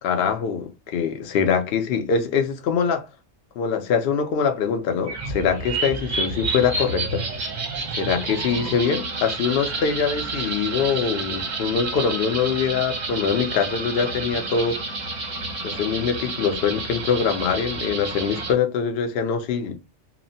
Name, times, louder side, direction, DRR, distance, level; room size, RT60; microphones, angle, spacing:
voice 1, 0.0-3.0 3.6-7.3 7.9-14.8 15.6-19.7, left 6 dB, 60° left, 0.7 m, -23 dB
sound 1, 5.1-18.5, right 3 dB, 45° right, 0.7 m, -30 dB
2.9 x 2.1 x 2.6 m
omnidirectional pair, 1.3 m